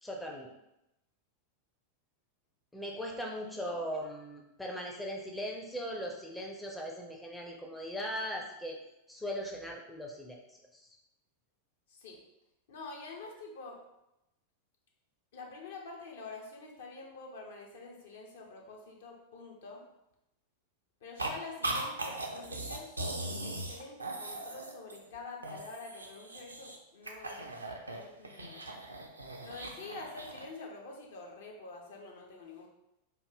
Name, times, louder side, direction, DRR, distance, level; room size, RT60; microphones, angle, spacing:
voice 1, 0.0-0.5 2.7-8.8 9.1-10.4 10.7-10.9, equal, 5° left, 0 dB, 0.5 m, -39 dB
voice 2, 11.9-12.2 12.7-13.8 15.3-19.8 21.0-27.5 27.9-28.6 29.4-32.7, left 3 dB, 60° left, 0 dB, 0.7 m, -47 dB
sound 1, 21.2-21.3 21.6-25.1 25.4-26.8 27.0-30.5, right 2 dB, 80° right, 0.4 m, -39 dB
3.4 x 2.2 x 3.3 m, 0.88 s
figure-of-eight pair, 90°, 0 cm